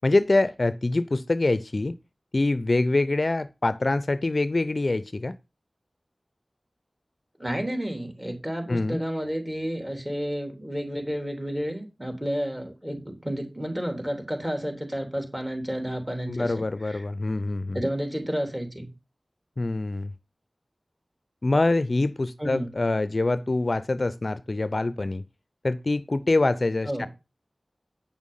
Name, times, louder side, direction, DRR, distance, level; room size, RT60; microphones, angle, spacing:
voice 1, 0.0-1.9 2.3-5.3 8.7-9.0 16.3-17.8 19.6-20.1 21.4-25.2 25.6-27.1, left 2 dB, 50° left, 0.5 m, -25 dB
voice 2, 7.4-16.5 16.8-17.0 17.7-18.9 22.4-22.7 26.9-27.1, equal, 15° right, 3.2 m, -31 dB
9.0 x 6.2 x 5.5 m
wide cardioid pair, 60°, 0 cm